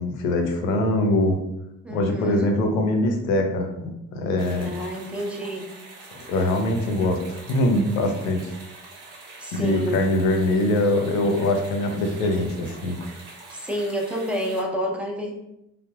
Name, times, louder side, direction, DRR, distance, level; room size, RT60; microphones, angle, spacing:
voice 1, 0.0-1.4 1.9-3.7 4.1-4.7 6.1-7.2 7.5-8.5 9.5-13.0, left 1 dB, 80° left, 4 dB, 0.6 m, -22 dB
voice 2, 1.8-2.5 4.6-5.7 9.4-10.0 13.5-15.3, equal, 5° right, -1 dB, 0.7 m, -29 dB
sound 1, 4.4-14.6, right 3 dB, 60° right, 0.9 m, -44 dB
3.3 x 2.5 x 2.4 m, 0.85 s
hypercardioid pair, 50°, 42 cm